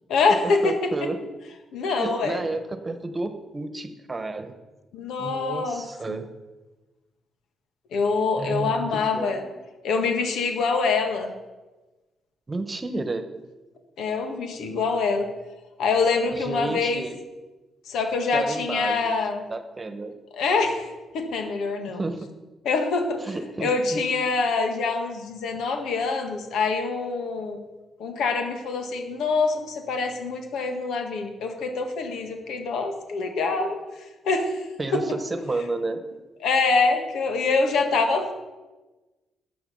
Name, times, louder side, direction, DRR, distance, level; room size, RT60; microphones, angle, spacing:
voice 1, 0.1-0.8 1.7-2.4 4.9-6.2 7.9-9.4 9.8-11.3 14.0-15.3 15.8-17.0 17.9-19.4 20.3-20.9 21.1-22.0 22.7-23.2 23.6-27.6 28.0-33.8 34.2-34.6 34.9-35.0 36.4-38.3, left 4 dB, 80° left, 5 dB, 1.7 m, -25 dB
voice 2, 0.6-1.2 1.8-4.5 5.2-6.2 8.3-9.6 12.5-13.3 16.3-17.2 18.3-19.2 19.5-20.1 22.0-22.3 23.2-24.0 34.8-36.0, right 2 dB, 30° right, 9 dB, 1.3 m, -31 dB
12.0 x 7.7 x 5.5 m, 1.2 s
supercardioid pair, 60°, 0 cm